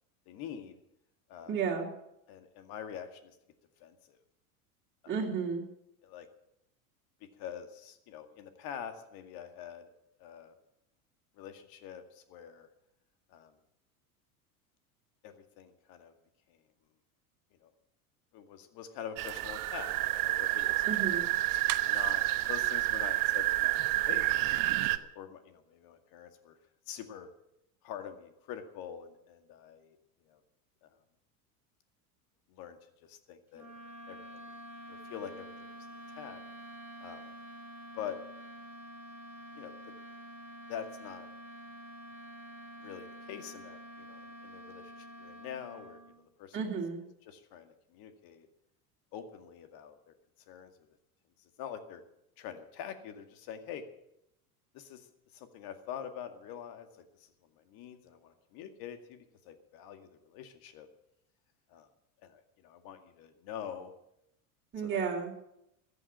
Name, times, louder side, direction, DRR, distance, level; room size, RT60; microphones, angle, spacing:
voice 1, 0.3-0.8 1.3-1.6 2.3-3.4 3.8-4.2 5.0-5.2 6.0-6.3 7.4-9.9 10.2-10.5 11.4-12.7 13.3-13.5 15.2-16.1 16.5-16.6 17.6-17.7 18.3-20.8 21.8-26.6 26.9-27.3 27.8-30.0 30.3-30.4 30.8-31.0 32.5-32.8 33.1-33.7 34.1-34.5 34.9-36.4 37.0-37.3 37.9-38.2 39.6-39.8 40.7-41.3 42.8-46.6 47.2-48.5 49.1-50.1 50.5-50.7 51.4-52.0 52.4-53.8 54.7-57.3 57.6-60.9 61.7-61.9 62.2-63.9 64.8-65.0, left 8 dB, 55° left, 7 dB, 2.2 m, -45 dB
voice 2, 1.5-1.9 5.1-5.6 20.8-21.3 46.5-47.0 64.7-65.3, right 6 dB, 25° right, -4 dB, 3.1 m, -32 dB
sound 1, 19.2-25.0, right 16 dB, 50° right, 1.0 m, -29 dB
sound 2, 33.5-46.2, equal, 5° right, 5.8 m, -48 dB
14.0 x 7.9 x 9.7 m, 0.82 s
hypercardioid pair, 90°, 44 cm